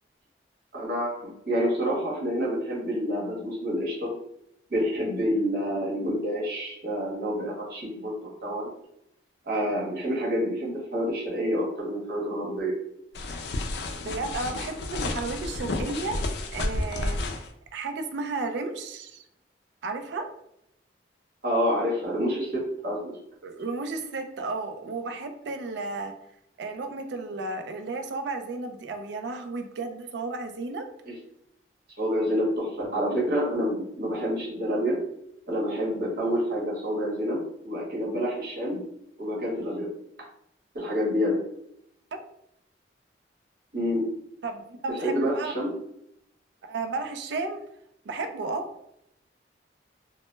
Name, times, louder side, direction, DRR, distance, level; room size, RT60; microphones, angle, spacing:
voice 1, 0.7-1.2 1.5-4.1 4.7-8.7 9.5-12.7 21.4-23.1 31.0-31.1 32.0-35.0 35.5-38.8 39.2-39.9 40.7-41.4 43.7-44.1 45.0-45.7, equal, 60° right, -4 dB, 1.0 m, -28 dB
sound 1, 13.1-17.5, left 2 dB, 65° left, 0.4 m, -31 dB
voice 2, 14.0-16.2 16.5-17.4 17.7-19.2 19.8-20.3 23.4-26.1 26.6-30.8 42.1-42.2 44.4-45.5 46.6-47.6 48.1-48.7, right 3 dB, 80° right, 6 dB, 0.4 m, -33 dB
2.1 x 2.1 x 3.0 m, 0.76 s
head